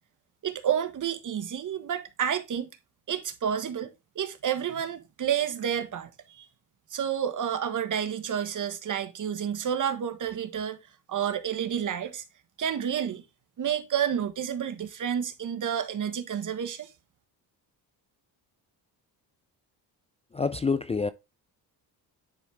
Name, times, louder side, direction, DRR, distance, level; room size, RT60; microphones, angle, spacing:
voice 1, 0.4-2.7 3.1-6.5 6.9-10.8 11.1-12.2 12.6-13.2 13.6-16.9, right 9 dB, 50° right, 1.5 m, -30 dB
voice 2, 20.3-21.1, left 4 dB, 15° left, 0.4 m, -27 dB
10.5 x 4.4 x 3.5 m
cardioid pair, 120°, 40 cm